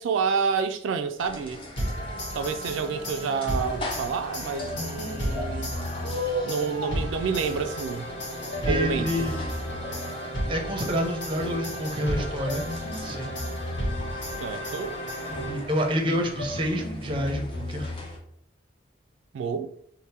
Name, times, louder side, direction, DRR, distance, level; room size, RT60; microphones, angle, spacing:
voice 1, 0.0-1.6 2.3-5.7 6.5-8.1 8.7-9.3 14.4-15.0 19.3-19.7, right 5 dB, 80° right, 0.3 m, -29 dB
sound 1, 1.2-18.2, left 1 dB, 25° left, 0.6 m, -39 dB
sound 2, 1.8-15.9, equal, 65° left, 1.3 m, -34 dB
sound 3, 2.4-2.6 3.5-3.9 4.6-6.5 7.4-7.9 8.5-10.3 11.4-11.8 12.5-14.4 15.3-15.7 16.4-18.2, left 1 dB, 50° left, 1.3 m, -36 dB
voice 2, 8.6-9.4 10.5-12.7 13.0-13.4 15.3-17.9, equal, 25° right, 0.5 m, -28 dB
3.4 x 2.1 x 4.2 m
head